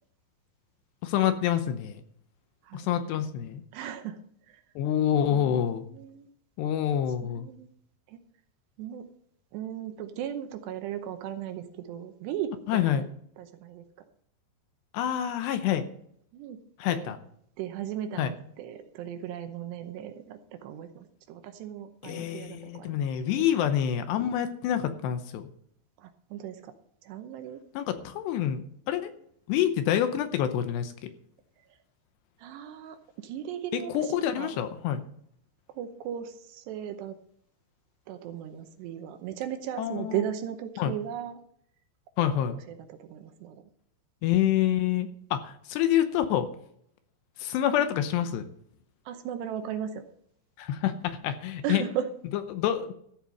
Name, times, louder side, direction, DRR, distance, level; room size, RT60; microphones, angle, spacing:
voice 1, 1.0-2.0 2.7-3.6 4.8-5.8 6.6-7.5 12.7-13.1 14.9-15.9 16.8-17.2 18.2-18.3 22.0-25.5 27.7-29.1 29.5-31.1 33.7-35.0 39.8-40.2 40.8-40.9 42.2-42.6 44.2-46.5 47.4-48.5 50.6-51.8 52.5-52.9, left 10 dB, 80° left, 9 dB, 2.8 m, -27 dB
voice 2, 3.7-4.2 4.5-4.6 5.3-6.3 7.2-7.7 8.1-8.2 8.8-9.1 9.5-13.1 13.4-13.8 16.3-16.6 16.9-17.1 17.6-23.1 23.4-23.5 26.0-26.7 27.0-27.6 32.4-34.5 35.7-37.2 38.1-41.4 42.2-43.6 49.1-50.0 51.6-52.1, right 10 dB, 80° right, 8 dB, 2.9 m, -37 dB
14.0 x 7.7 x 5.3 m, 0.68 s
omnidirectional pair, 5.2 m